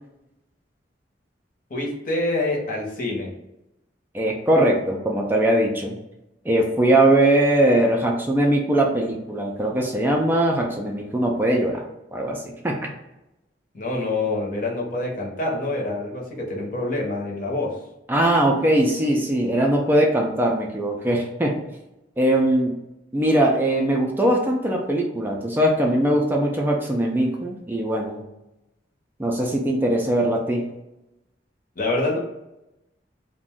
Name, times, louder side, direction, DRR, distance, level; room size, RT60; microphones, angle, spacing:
voice 1, 1.7-3.3 13.7-17.7 31.8-32.2, left 2 dB, 50° left, -1 dB, 0.8 m, -26 dB
voice 2, 4.1-5.9 6.4-11.8 12.1-12.9 18.1-21.6 22.2-22.8 23.1-28.2 29.2-30.7, right 1 dB, 10° right, 0 dB, 0.3 m, -21 dB
2.4 x 2.1 x 3.5 m, 0.92 s
head